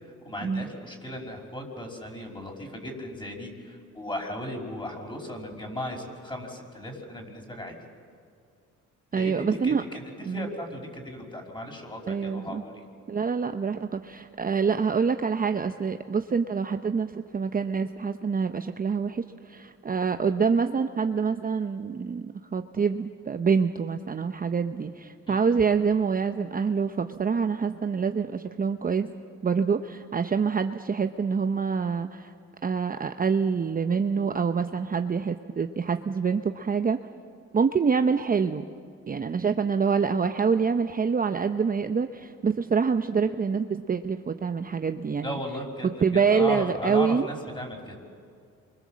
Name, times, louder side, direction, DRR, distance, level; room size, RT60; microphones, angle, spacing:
voice 1, 0.2-7.8 9.1-12.8 25.3-25.4 45.2-48.0, left 1 dB, 15° left, 2 dB, 5.4 m, -36 dB
voice 2, 9.1-9.8 10.3-10.5 12.1-12.6 13.1-29.1 29.4-32.3 32.6-37.0 37.5-38.6 39.1-45.4 46.0-47.3, right 5 dB, 30° right, 8 dB, 0.8 m, -26 dB
28.5 x 24.5 x 7.5 m, 2.3 s
cardioid pair, 90°, 30 cm